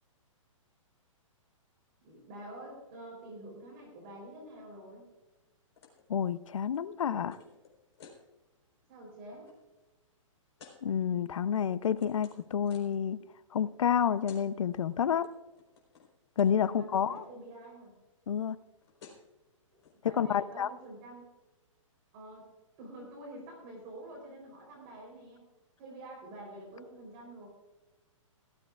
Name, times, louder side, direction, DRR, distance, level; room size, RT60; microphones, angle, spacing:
voice 1, 2.0-5.1 8.9-9.5 16.6-17.9 19.7-19.8 20.0-21.3 22.1-22.5 22.8-25.5 25.8-27.5, right 1 dB, 25° right, -1 dB, 3.9 m, -47 dB
sound 1, 5.8-6.0 6.3-8.2 8.7-8.9 9.2-9.5 10.6-10.8 11.4-13.0 13.9-14.0 14.2-14.5 14.7-15.3 15.5-16.1 16.4-16.5 16.8-17.3 18.5-18.6 18.8-19.3 19.8-19.9, left 5 dB, 55° left, 4.4 m, -56 dB
voice 2, 6.1-7.4 10.8-13.2 13.5-15.3 16.4-17.1 18.3-18.6 20.2-20.7, left 8 dB, 70° left, 16 dB, 0.7 m, -29 dB
18.0 x 14.0 x 2.5 m, 1.1 s
hypercardioid pair, 175°, 17 cm